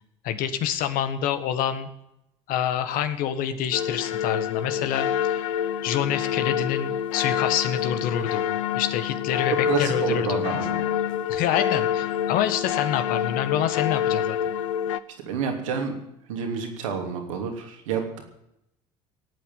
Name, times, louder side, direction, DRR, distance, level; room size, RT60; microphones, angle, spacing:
voice 1, 0.2-1.9 2.5-5.1 5.8-10.5 11.3-14.4, left 9 dB, 60° left, 10 dB, 1.7 m, -27 dB
sound 1, 3.7-15.0, left 9 dB, 75° left, 0.7 m, -27 dB
voice 2, 9.6-10.8 15.2-15.9 16.3-18.2, right 6 dB, 75° right, 3 dB, 3.1 m, -29 dB
18.0 x 8.9 x 9.0 m, 0.82 s
hypercardioid pair, 65°, 16 cm